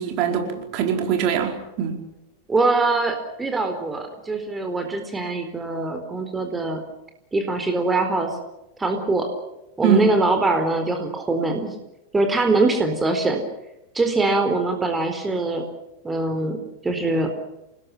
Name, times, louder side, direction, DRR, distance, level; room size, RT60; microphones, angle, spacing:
voice 1, 0.0-2.0 9.8-10.2, right 7 dB, 40° right, 3 dB, 4.8 m, -22 dB
voice 2, 2.5-6.8 7.3-8.4 8.8-9.3 9.8-11.7 12.1-13.4 13.9-15.6 16.0-17.3, right 3 dB, 10° right, 6 dB, 4.2 m, -23 dB
29.0 x 20.0 x 7.5 m, 0.92 s
figure-of-eight pair, 90°, 0 cm